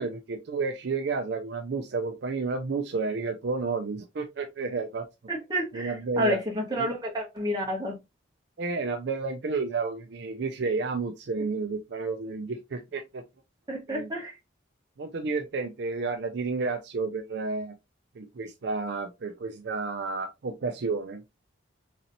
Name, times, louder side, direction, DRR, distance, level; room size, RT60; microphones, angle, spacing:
voice 1, 0.0-5.1 5.7-6.4 6.8-6.9 8.6-13.2 13.9-14.1 15.0-17.7 18.2-21.2, right 4 dB, 60° right, 0.4 m, -31 dB
voice 2, 5.3-8.0 13.7-14.3, equal, 20° right, 1.2 m, -30 dB
4.0 x 3.0 x 2.6 m
head